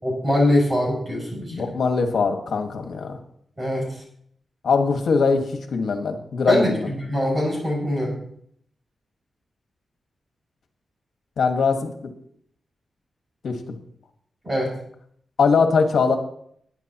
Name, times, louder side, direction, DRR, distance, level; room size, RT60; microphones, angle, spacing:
voice 1, 0.0-1.7 3.6-3.9 6.5-8.2 14.4-14.7, left 1 dB, 25° right, -3 dB, 6.4 m, -22 dB
voice 2, 1.5-3.2 4.6-6.9 11.4-12.1 13.4-13.6 15.4-16.2, left 5 dB, 75° left, 4 dB, 1.7 m, -21 dB
20.5 x 9.1 x 3.1 m, 0.67 s
wide cardioid pair, 130°, 0 cm